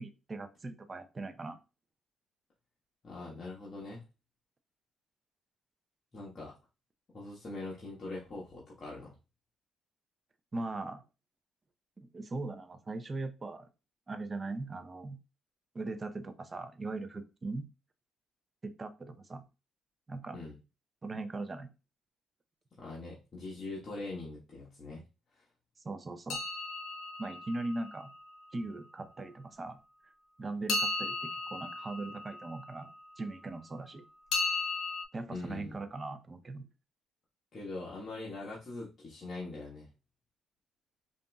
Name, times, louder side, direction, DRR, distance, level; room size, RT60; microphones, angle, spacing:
voice 1, 0.0-1.6 10.5-11.0 12.1-13.7 14.1-15.2 15.7-17.7 18.6-19.4 20.1-20.4 21.0-21.7 25.8-26.4 27.2-28.1 28.5-29.8 30.4-34.0 35.1-36.6, right 2 dB, 30° right, 9 dB, 0.6 m, -39 dB
voice 2, 3.0-4.0 6.1-6.5 7.1-9.1 20.3-20.5 22.8-25.0 25.3-25.4 35.3-35.8 37.5-39.9, left 2 dB, 45° left, -6 dB, 1.4 m, -42 dB
sound 1, 26.3-28.4 30.7-33.1 34.3-35.0, left 3 dB, 75° left, 1.0 m, -36 dB
5.2 x 2.6 x 2.3 m, 0.28 s
cardioid pair, 90°, 0 cm